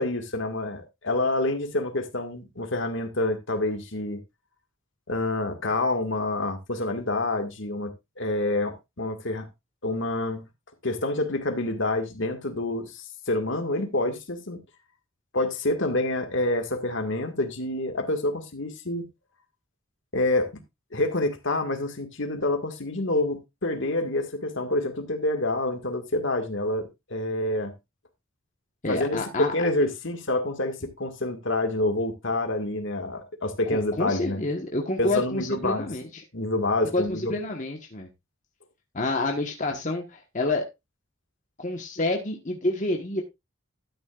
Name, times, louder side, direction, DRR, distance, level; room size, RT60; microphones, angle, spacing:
voice 1, 0.0-4.2 5.1-9.5 9.8-10.4 10.8-14.6 15.3-19.1 20.1-20.5 20.9-27.7 28.9-34.4 35.0-35.9 36.3-37.3, left 2 dB, 60° left, 1.9 m, -27 dB
voice 2, 28.8-29.5 33.6-36.2 36.9-38.1 38.9-40.7 41.6-43.2, left 2 dB, 35° left, 1.3 m, -28 dB
12.5 x 9.8 x 2.5 m
head